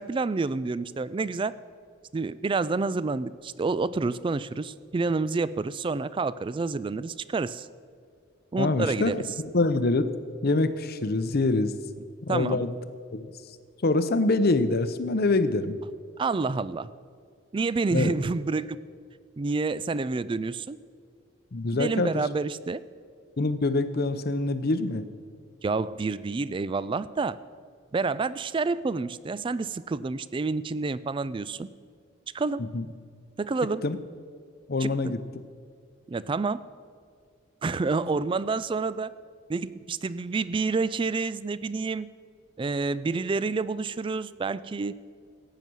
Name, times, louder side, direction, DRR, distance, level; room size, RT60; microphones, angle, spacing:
voice 1, 0.0-1.5 2.1-7.7 8.5-9.2 12.3-12.6 16.2-16.9 17.5-18.8 19.4-20.8 21.7-22.8 25.6-27.4 27.9-31.7 32.3-32.7 33.4-33.8 34.8-35.1 36.1-36.6 37.6-39.1 39.5-42.1 42.6-45.0, right 3 dB, 25° right, 17 dB, 0.3 m, -28 dB
voice 2, 8.6-10.0 10.4-11.7 12.3-12.7 13.1-13.3 13.8-15.8 17.9-18.1 21.5-22.2 23.4-25.1 32.7-32.9 33.8-34.0 34.7-35.2, left 2 dB, 50° left, 12 dB, 0.7 m, -25 dB
15.5 x 9.1 x 6.2 m, 2.1 s
head